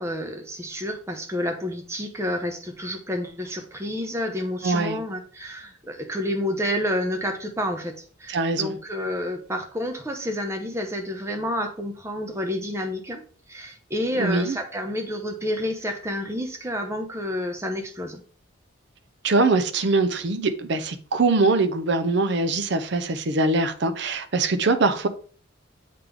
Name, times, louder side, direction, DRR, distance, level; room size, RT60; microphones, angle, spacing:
voice 1, 0.0-13.2 13.5-18.2, left 1 dB, 15° right, 0.8 m, -29 dB
voice 2, 4.6-5.0 8.3-8.8 14.2-14.6 19.2-25.1, right 3 dB, 60° right, 0.6 m, -22 dB
7.5 x 3.7 x 3.4 m
head